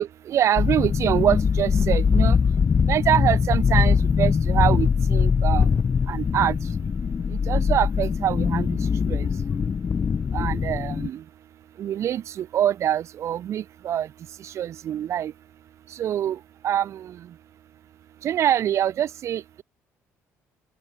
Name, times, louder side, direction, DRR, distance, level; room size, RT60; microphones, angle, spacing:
voice 1, 0.0-2.6 2.8-6.8 7.3-9.4 10.3-11.2 11.8-15.3 15.9-17.4 18.2-19.6, right 10 dB, 60° right, 1.7 m, -25 dB
sound 1, 0.6-11.1, left 6 dB, 35° left, 1.1 m, -22 dB
open air
cardioid pair, 100°, 6 cm